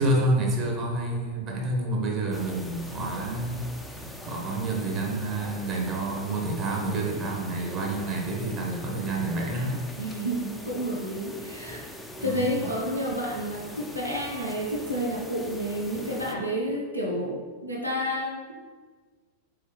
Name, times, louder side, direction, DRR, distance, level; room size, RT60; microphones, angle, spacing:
voice 1, 0.0-3.6 4.0-9.8 12.2-12.5, right 2 dB, 35° right, 0 dB, 1.0 m, -28 dB
sound 1, 2.3-16.3, equal, 5° left, 0.4 m, -42 dB
voice 2, 10.0-11.9 12.2-18.5, equal, 85° right, -2 dB, 0.7 m, -30 dB
4.1 x 3.3 x 3.7 m, 1.4 s
figure-of-eight pair, 90°, 0 cm